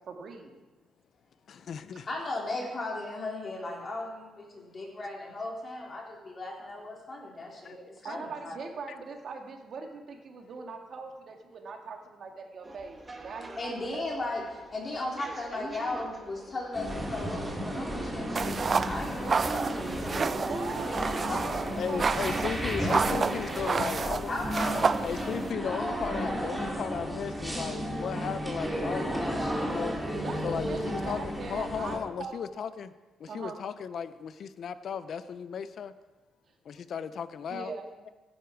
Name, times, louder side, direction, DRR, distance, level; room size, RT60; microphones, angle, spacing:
voice 1, 0.1-0.6 8.0-14.3 20.1-22.4 30.1-32.4 33.3-33.6 37.5-37.8, right 4 dB, 55° right, 3 dB, 2.1 m, -41 dB
voice 2, 1.5-2.1 7.6-7.7 21.8-24.3 25.0-29.3 29.6-30.0 30.4-32.9 33.2-35.9 36.6-37.7, left 7 dB, 60° left, 13 dB, 0.7 m, -36 dB
voice 3, 2.0-8.6 13.6-20.3 20.9-21.6 22.7-23.0 24.2-25.8, left 2 dB, 35° left, -2 dB, 4.2 m, -37 dB
sound 1, 12.6-23.8, right 2 dB, 25° right, 1.7 m, -44 dB
sound 2, 16.7-32.0, equal, 5° right, 3.2 m, -33 dB
sound 3, 18.3-25.5, right 5 dB, 40° right, 0.4 m, -30 dB
15.5 x 10.0 x 4.8 m, 1.2 s
cardioid pair, 90°, 0 cm